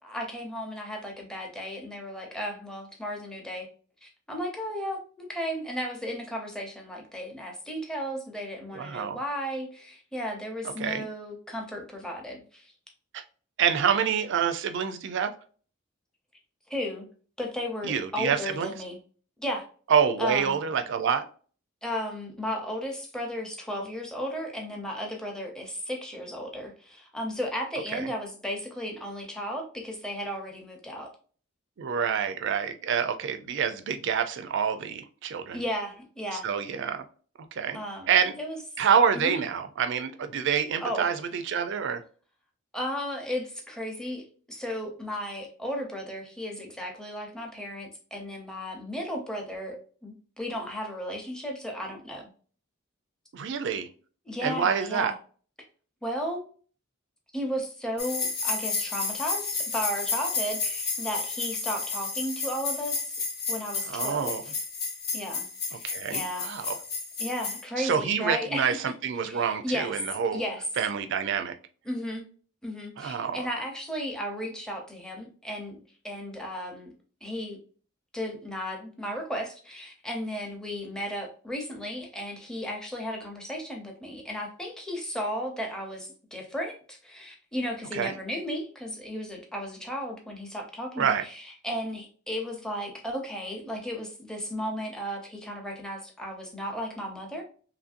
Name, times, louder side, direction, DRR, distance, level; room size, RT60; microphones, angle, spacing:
voice 1, 0.0-3.7 4.0-12.7 16.7-17.0 17.4-19.0 19.4-19.7 20.2-20.6 21.8-31.1 35.5-36.5 37.7-38.1 38.4-38.6 39.1-39.4 40.8-41.1 42.7-52.2 54.3-55.1 56.0-56.4 57.3-63.1 63.5-64.6 65.1-66.7 67.2-68.8 69.2-70.0 70.3-70.6 71.9-72.2 72.6-75.8 76.0-76.9 77.2-77.6 78.1-97.4, equal, 5° left, 1 dB, 0.6 m, -34 dB
voice 2, 8.7-9.2 10.8-11.1 13.1-13.2 13.6-15.3 17.8-18.7 19.9-21.2 27.9-28.1 31.8-35.6 36.3-37.0 37.5-37.8 38.1-38.3 38.8-42.0 53.3-53.9 54.4-55.1 63.9-64.4 65.8-66.8 67.8-70.4 70.8-71.5 73.0-73.4 87.9-88.1 91.0-91.2, right 7 dB, 60° right, 8 dB, 0.4 m, -27 dB
sound 1, 58.0-67.6, left 4 dB, 50° left, 0.7 m, -32 dB
3.0 x 2.6 x 2.4 m, 0.41 s
head